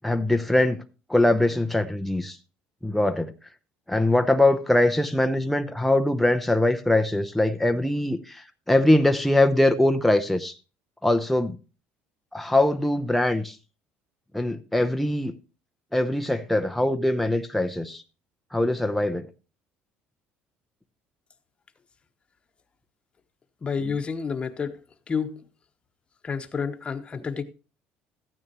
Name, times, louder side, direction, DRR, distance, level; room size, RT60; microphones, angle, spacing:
voice 1, 0.0-0.8 1.1-2.4 2.8-3.3 3.9-10.5 11.0-11.6 12.3-13.6 14.3-15.3 15.9-18.0 18.5-19.3, left 1 dB, ahead, 0.7 m, -22 dB
voice 2, 23.6-24.7 25.1-25.4 26.2-27.4, left 5 dB, 25° left, 1.1 m, -29 dB
14.0 x 9.5 x 3.0 m
cardioid pair, 125°, 4 cm